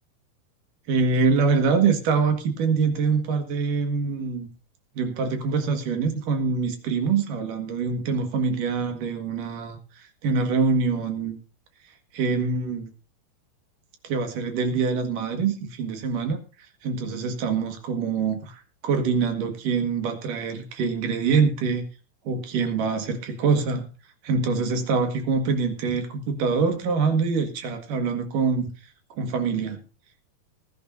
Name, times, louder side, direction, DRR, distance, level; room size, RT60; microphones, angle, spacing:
voice 1, 0.9-4.5 5.0-11.4 12.1-12.9 14.0-16.4 16.8-21.8 22.2-23.9 24.2-28.7 29.2-29.8, right 5 dB, 65° right, 6 dB, 3.2 m, -24 dB
20.0 x 11.0 x 2.7 m, 0.34 s
omnidirectional pair, 4.5 m